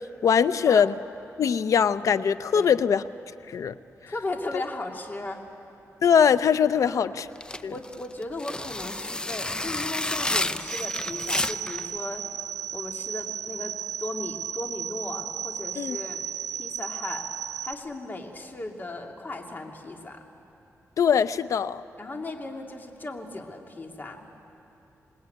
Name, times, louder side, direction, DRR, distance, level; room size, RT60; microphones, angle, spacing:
voice 1, 0.2-0.9 1.4-3.0 3.5-3.7 6.0-7.3 7.6-7.7 15.8-16.0 21.0-21.8, left 7 dB, 70° left, 14 dB, 0.6 m, -21 dB
voice 2, 4.1-5.4 6.7-7.1 7.7-12.3 12.7-16.3 16.6-17.3 17.6-20.2 22.0-24.3, left 2 dB, 35° left, 2 dB, 2.5 m, -36 dB
sound 1, 7.4-11.8, left 2 dB, 15° left, 0.6 m, -30 dB
sound 2, 10.6-17.7, right 9 dB, 85° right, 0.6 m, -34 dB
26.5 x 20.0 x 9.3 m, 2.9 s
cardioid pair, 95°, 6 cm